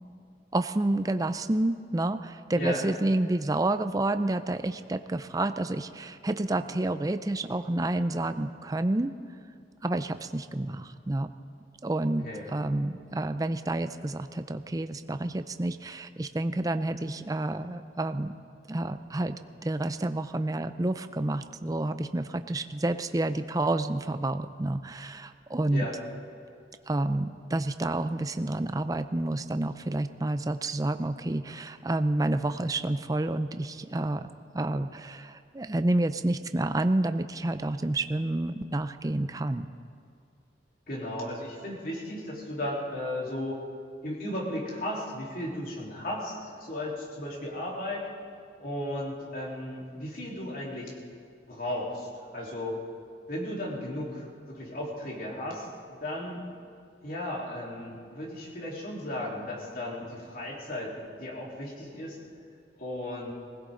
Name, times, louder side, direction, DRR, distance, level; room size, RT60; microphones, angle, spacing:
voice 1, 0.5-9.1 9.8-11.3 11.8-18.3 18.7-19.3 19.6-25.9 26.9-34.3 34.5-39.7, right 2 dB, 20° right, 10 dB, 0.5 m, -29 dB
voice 2, 40.9-43.6 44.0-48.1 48.6-50.9 51.5-52.8 53.3-55.7 56.0-56.4 57.0-60.9 61.2-62.2 62.8-63.3, left 1 dB, 55° left, -4 dB, 3.6 m, -35 dB
23.0 x 16.0 x 3.8 m, 2.3 s
head